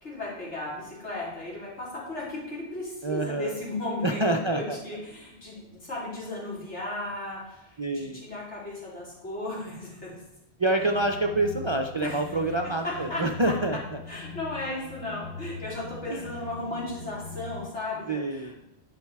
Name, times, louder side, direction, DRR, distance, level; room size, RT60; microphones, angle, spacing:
voice 1, 0.0-4.2 4.5-10.1 12.0-12.2 12.8-13.5 14.1-18.6, left 2 dB, 85° left, -5 dB, 3.4 m, -35 dB
voice 2, 3.0-3.6 4.0-4.8 7.8-8.2 10.6-14.0 16.1-16.3 18.1-18.6, right 2 dB, 40° right, 4 dB, 0.4 m, -27 dB
sound 1, 10.8-17.7, left 5 dB, 65° left, 0.9 m, -41 dB
10.5 x 5.3 x 4.7 m, 0.90 s
omnidirectional pair, 1.1 m